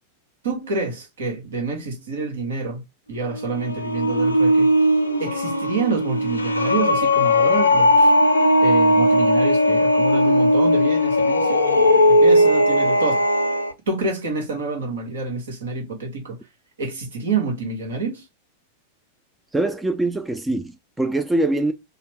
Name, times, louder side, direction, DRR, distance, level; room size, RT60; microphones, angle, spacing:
voice 1, 0.4-2.8 3.1-4.7 5.2-8.1 8.6-13.2 13.9-16.4 16.8-18.3, right 3 dB, 65° right, 1.4 m, -27 dB
sound 1, 3.2-13.7, left 1 dB, 80° left, 0.6 m, -18 dB
voice 2, 19.5-21.7, right 2 dB, 5° right, 0.4 m, -23 dB
4.0 x 2.2 x 3.0 m
figure-of-eight pair, 90°, 0 cm